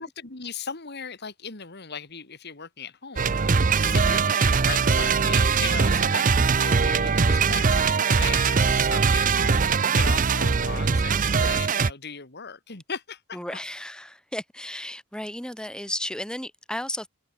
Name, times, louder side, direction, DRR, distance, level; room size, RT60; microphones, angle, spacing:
voice 1, 0.0-3.4 3.8-6.3 6.6-13.6, left 6 dB, 55° left, 2.3 m, -37 dB
sound 1, 3.2-11.9, right 5 dB, 40° right, 0.6 m, -21 dB
voice 2, 13.3-17.1, left 1 dB, 5° left, 2.1 m, -34 dB
head